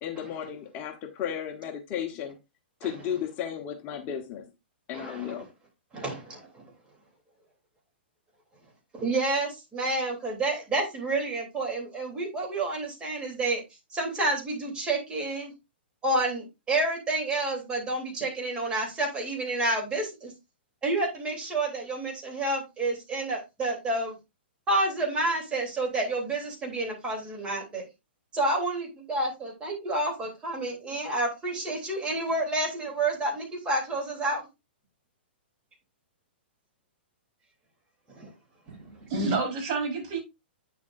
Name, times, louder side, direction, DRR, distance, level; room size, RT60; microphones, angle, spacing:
voice 1, 0.0-2.4 2.8-4.5 4.9-5.5, left 9 dB, 30° left, 1.1 m, -34 dB
voice 2, 4.9-5.3 5.9-6.6 8.9-13.6 13.9-15.5 16.0-20.3 20.8-24.1 24.7-27.8 28.3-34.5 38.2-38.3, right 2 dB, 15° right, 3.2 m, -29 dB
voice 3, 38.7-40.2, right 3 dB, 40° right, 4.4 m, -29 dB
8.9 x 7.0 x 2.6 m
hypercardioid pair, 140°, 6 cm